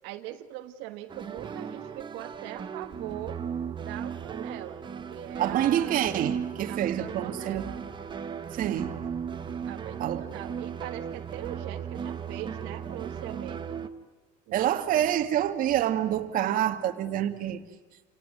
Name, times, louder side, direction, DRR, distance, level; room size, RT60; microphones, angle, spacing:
voice 1, 0.0-3.4 3.8-4.8 5.1-6.0 6.7-7.8 9.6-13.8 14.5-15.0, right 14 dB, 75° right, 1.6 m, -41 dB
sound 1, 1.1-13.9, right 7 dB, 25° right, 1.5 m, -36 dB
voice 2, 5.4-7.7 8.5-9.0 10.0-10.2 14.5-17.6, right 11 dB, 45° right, 2.1 m, -27 dB
29.0 x 18.0 x 9.3 m
cardioid pair, 145°, 19 cm